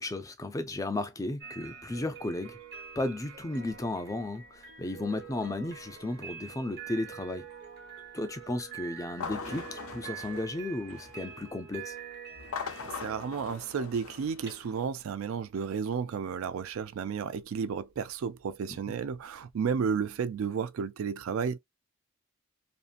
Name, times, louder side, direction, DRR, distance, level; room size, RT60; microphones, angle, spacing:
voice 1, 0.0-2.6 3.0-7.5 8.1-11.9 18.7-18.8, left 2 dB, 15° left, 0.4 m, -34 dB
sound 1, 1.4-20.4, right 8 dB, 50° right, 1.0 m, -47 dB
sound 2, 9.1-11.3 12.4-14.9, left 6 dB, 75° left, 0.6 m, -41 dB
voice 2, 13.0-21.6, right 6 dB, 70° right, 0.3 m, -32 dB
2.6 x 2.4 x 2.4 m
head